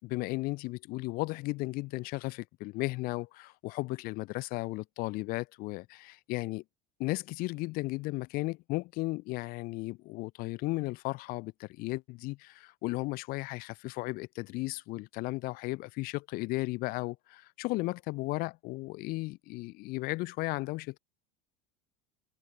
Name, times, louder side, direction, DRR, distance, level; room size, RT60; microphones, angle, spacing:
voice 1, 0.0-6.6 7.0-21.0, left 22 dB, 45° left, 4.5 m, -35 dB
cardioid pair, 175°, 20 cm